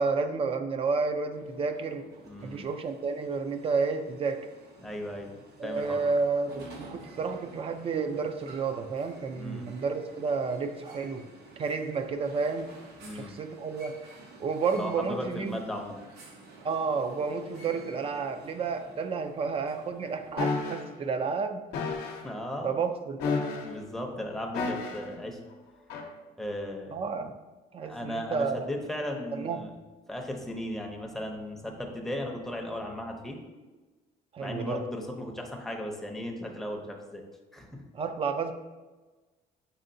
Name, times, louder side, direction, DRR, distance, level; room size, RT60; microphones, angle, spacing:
voice 1, 0.0-2.0 2.4-4.5 5.6-11.2 11.6-12.7 13.1-14.0 14.4-15.6 16.6-21.6 22.6-23.2 26.9-27.3 27.7-28.7 29.3-29.6 34.3-34.8 37.9-38.5, right 4 dB, 35° right, 8 dB, 0.4 m, -31 dB
sound 1, 1.3-20.5, right 2 dB, 75° right, 0.8 m, -51 dB
voice 2, 2.2-2.7 4.8-6.0 9.3-9.7 13.0-13.4 14.8-16.0 22.1-22.8 23.6-25.4 26.4-27.0 27.8-29.7 30.1-33.4 34.4-37.2 37.5-37.8, left 1 dB, ahead, 1 dB, 0.6 m, -36 dB
sound 2, 20.4-20.8 21.7-22.2 23.2-23.8 24.5-25.1 25.9-26.1, left 4 dB, 75° left, 0.7 m, -31 dB
5.5 x 3.5 x 2.6 m, 1.2 s
cardioid pair, 110°, 17 cm